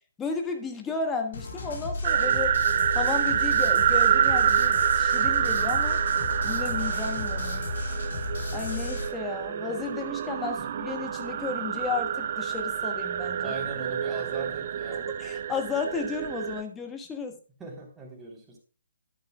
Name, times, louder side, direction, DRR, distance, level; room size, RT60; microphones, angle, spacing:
voice 1, 0.2-2.6 2.9-6.0 6.4-7.7 8.5-13.5 15.2-17.4, left 5 dB, 10° left, 4 dB, 1.3 m, -33 dB
sound 1, 1.3-9.1, left 2 dB, 60° left, 4.2 m, -33 dB
sound 2, 2.0-16.6, right 9 dB, 45° right, 0.6 m, -27 dB
voice 2, 13.4-15.1 17.6-18.6, right 3 dB, 10° right, -1 dB, 3.4 m, -40 dB
11.5 x 10.5 x 2.3 m, 0.39 s
figure-of-eight pair, 135°, 0 cm